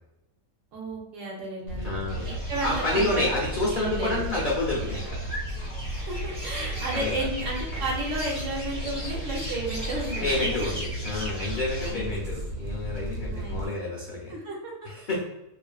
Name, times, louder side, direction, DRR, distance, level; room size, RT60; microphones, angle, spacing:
voice 1, 0.7-2.2 2.5-3.2 3.8-4.2 5.8-10.7 11.8-12.1 13.3-13.6 14.3-14.7, right 2 dB, 65° right, -1 dB, 0.9 m, -33 dB
voice 2, 1.7-2.3 2.6-5.2 6.9-7.3 10.2-14.4 14.8-15.2, left 2 dB, 70° left, -5 dB, 0.4 m, -29 dB
Fire, 1.7-13.7, right 1 dB, 85° right, 1.1 m, -34 dB
sound 1, 2.1-11.9, equal, 5° right, 0.5 m, -39 dB
2.4 x 2.4 x 2.2 m, 0.94 s
omnidirectional pair, 1.6 m